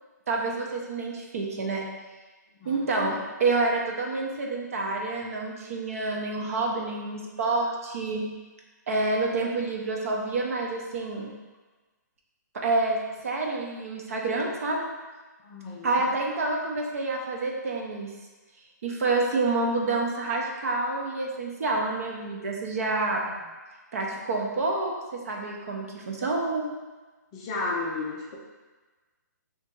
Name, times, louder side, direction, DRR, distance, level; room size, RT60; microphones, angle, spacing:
voice 1, 0.3-1.9 2.6-8.3 8.9-11.3 12.5-14.9 15.8-18.1 18.8-23.2 23.9-26.7, right 3 dB, 50° right, 0 dB, 0.7 m, -28 dB
voice 2, 2.5-3.1 15.4-16.1 23.2-23.3 27.3-28.4, left 3 dB, 20° left, -4 dB, 0.4 m, -34 dB
3.3 x 2.9 x 4.5 m, 1.3 s
hypercardioid pair, 170°, 10 cm